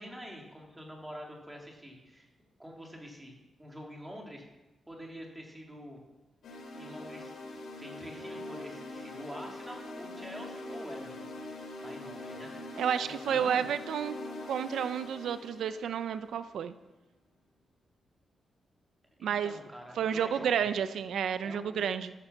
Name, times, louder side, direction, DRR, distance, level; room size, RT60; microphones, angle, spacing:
voice 1, 0.0-2.3 2.6-4.4 4.9-6.0 6.8-7.3 7.8-11.3 11.8-12.8 13.0-13.7 19.2-20.7 21.4-22.0, equal, 10° right, 0 dB, 3.6 m, -46 dB
sound 1, 6.4-16.5, left 2 dB, 75° left, 4.2 m, -43 dB
voice 2, 12.8-14.2 14.5-16.7 19.2-19.5 20.0-22.1, right 8 dB, 90° right, 11 dB, 0.7 m, -31 dB
14.5 x 12.0 x 7.2 m, 1.0 s
wide cardioid pair, 145°, 0 cm